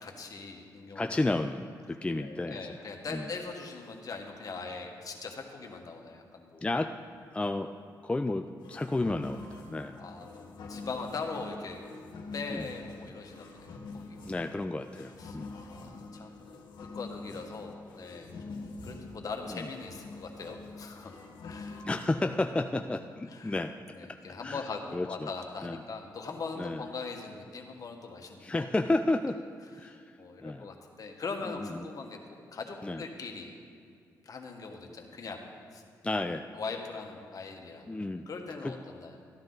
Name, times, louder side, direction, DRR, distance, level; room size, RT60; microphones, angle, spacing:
voice 1, 0.0-1.1 2.2-6.6 10.0-11.8 12.3-14.3 15.2-16.4 16.8-21.1 21.4-21.8 23.3-23.6 23.9-28.7 29.8-29.9 30.2-32.2 32.5-33.5 34.2-35.4 35.7-35.8 36.5-37.9 38.3-39.2, left 4 dB, 50° left, 2 dB, 1.5 m, -41 dB
voice 2, 1.0-2.7 3.1-3.2 6.6-6.9 7.3-7.7 8.0-10.0 12.5-12.7 14.3-15.5 19.5-19.7 21.9-23.7 24.1-25.3 25.6-25.8 26.6-26.9 28.4-29.4 29.8-30.7 31.5-31.9 32.8-33.0 36.0-36.5 37.9-38.3 38.6-38.7, left 2 dB, 15° left, 7 dB, 0.4 m, -32 dB
sound 1, 8.6-21.8, left 3 dB, 80° left, 1.4 m, -45 dB
13.5 x 10.5 x 4.0 m, 2.4 s
cardioid pair, 80°, 8 cm